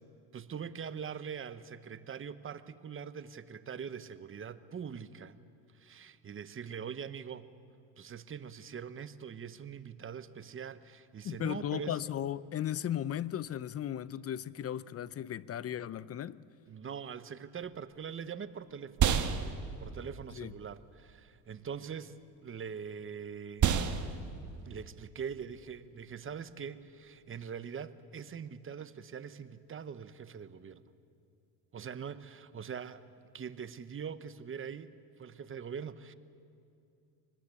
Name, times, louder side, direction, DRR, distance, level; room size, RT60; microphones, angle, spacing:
voice 1, 0.3-5.4 5.7-7.5 8.0-12.0 16.7-19.1 19.8-23.7 24.6-30.8 31.7-33.1 33.3-34.9 35.2-36.1, right 7 dB, 30° right, 13 dB, 1.0 m, -43 dB
voice 2, 11.2-16.4 20.4-20.5, left 10 dB, 40° left, 18 dB, 0.6 m, -36 dB
sound 1, 17.6-27.2, right 7 dB, 50° right, 1.5 m, -35 dB
25.5 x 20.0 x 8.4 m, 2.6 s
cardioid pair, 110°, 39 cm